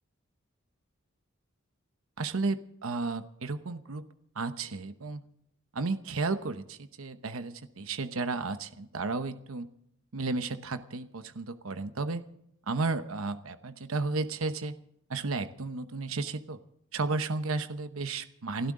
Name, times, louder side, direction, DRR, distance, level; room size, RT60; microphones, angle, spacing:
voice 1, 2.2-4.0 4.4-5.2 5.7-9.7 10.1-12.2 12.7-14.7 15.1-16.6 16.9-18.7, right 3 dB, 75° right, 10 dB, 0.9 m, -33 dB
29.5 x 12.5 x 3.7 m, 0.75 s
head